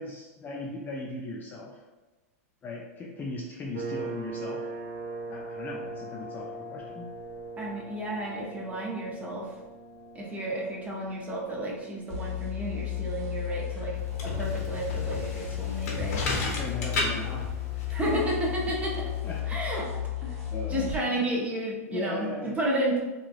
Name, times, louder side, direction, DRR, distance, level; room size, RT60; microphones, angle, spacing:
voice 1, 0.0-1.8 2.6-4.7 5.3-7.1 13.7-14.0 15.3-15.5 16.5-17.5 18.0-18.1 19.2-19.6 20.5-21.3 21.9-22.5, left 2 dB, 20° left, -2 dB, 0.4 m, -38 dB
sound 1, 3.7-19.0, right 2 dB, 50° right, 0.4 m, -43 dB
voice 2, 7.6-9.5 10.1-14.0 14.2-16.2 17.9-19.1 19.5-19.9 20.2-20.4 20.7-23.0, right 1 dB, 15° right, -3 dB, 0.7 m, -32 dB
sound 2, 12.1-21.0, left 12 dB, 5° left, 0.9 m, -33 dB
sound 3, 13.9-19.4, left 2 dB, 75° left, 0.9 m, -34 dB
3.1 x 2.3 x 2.3 m, 1.2 s
hypercardioid pair, 125°, 8 cm